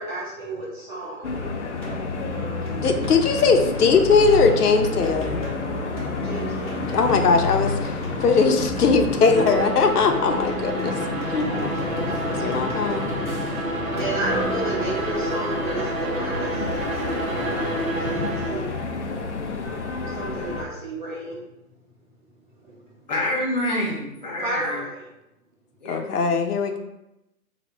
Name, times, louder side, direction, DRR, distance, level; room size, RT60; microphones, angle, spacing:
voice 1, 0.0-1.4 2.3-2.8 6.2-7.0 10.7-18.8 20.0-21.4 22.5-23.0 24.4-25.1, right 1 dB, 35° right, -6 dB, 1.2 m, -33 dB
sound 1, 1.2-20.6, left 3 dB, 55° left, 0.5 m, -30 dB
sound 2, 1.8-15.4, left 2 dB, ahead, 0.9 m, -34 dB
voice 2, 2.8-5.4 6.9-7.9 8.2-10.9 11.3-11.5 12.4-13.1 25.9-26.8, left 4 dB, 85° left, 5 dB, 0.7 m, -20 dB
Bowed string instrument, 9.2-18.7, right 2 dB, 65° right, 1.0 m, -30 dB
voice 3, 23.1-24.8 25.8-26.0 26.7-26.8, left 1 dB, 30° left, -4 dB, 1.0 m, -27 dB
3.1 x 2.7 x 4.2 m, 0.89 s
hypercardioid pair, 165°, 45 cm